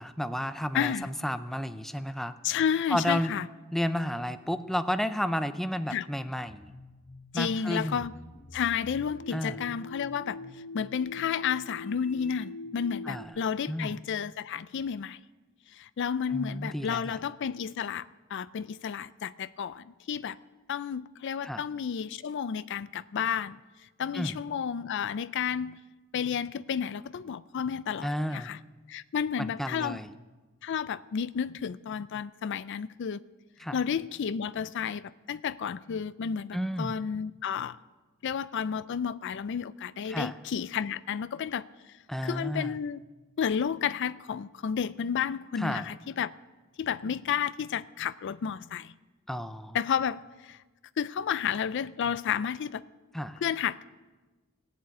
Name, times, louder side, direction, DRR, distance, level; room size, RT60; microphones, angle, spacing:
voice 1, 0.0-2.3 2.9-3.3 3.7-6.7 7.3-8.1 9.3-9.6 13.1-13.3 13.7-13.9 16.3-17.2 21.4-21.6 24.1-24.3 28.0-28.5 29.4-30.1 33.6-33.8 36.5-37.0 40.1-40.4 42.1-42.8 45.6-45.9 49.3-49.8 53.1-53.4, equal, ahead, 0.5 m, -32 dB
voice 2, 0.7-1.1 2.4-3.5 5.9-6.1 7.3-8.1 8.5-10.4 10.7-15.2 15.7-20.4 20.7-23.6 24.0-25.8 26.1-28.6 28.9-30.0 30.6-33.2 33.7-37.8 38.2-41.7 42.2-43.0 43.4-46.3 46.8-48.9 49.7-50.6 51.0-52.8 53.4-53.9, left 7 dB, 60° left, 0.4 m, -31 dB
sound 1, 6.5-13.2, left 2 dB, 35° left, 0.8 m, -44 dB
18.0 x 7.6 x 8.4 m
head